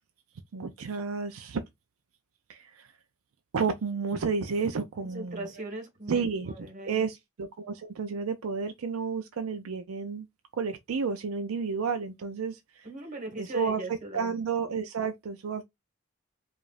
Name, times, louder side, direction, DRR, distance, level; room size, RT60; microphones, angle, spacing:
voice 1, 0.5-1.6 2.5-2.9 3.5-5.5 6.1-6.5 6.8-10.3 10.5-12.6 13.4-13.8 14.1-15.6, right 5 dB, 80° right, 0.5 m, -31 dB
voice 2, 5.1-7.1 12.8-14.4, right 1 dB, 40° right, 1.6 m, -39 dB
4.9 x 2.5 x 2.5 m
head